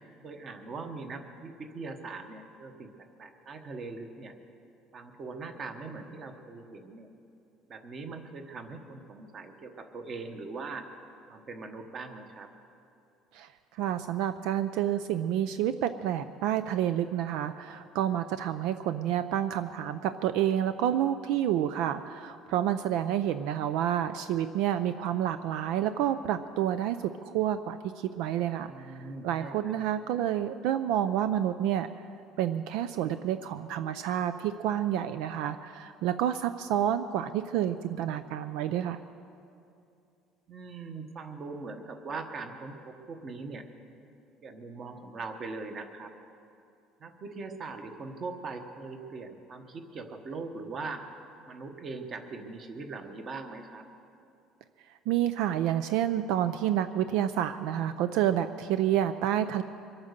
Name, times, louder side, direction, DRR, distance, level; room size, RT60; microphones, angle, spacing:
voice 1, 0.2-2.9 3.2-4.3 4.9-7.1 7.7-10.9 11.3-12.5 28.7-29.8 40.5-43.7 44.4-46.1 47.0-51.0 51.5-53.9, right 3 dB, 25° right, 6 dB, 1.1 m, -41 dB
voice 2, 13.8-28.7 29.2-31.9 32.4-39.0 55.1-59.6, right 11 dB, 65° right, 11 dB, 0.4 m, -29 dB
24.0 x 8.8 x 6.7 m, 2.6 s
cardioid pair, 180°, 0 cm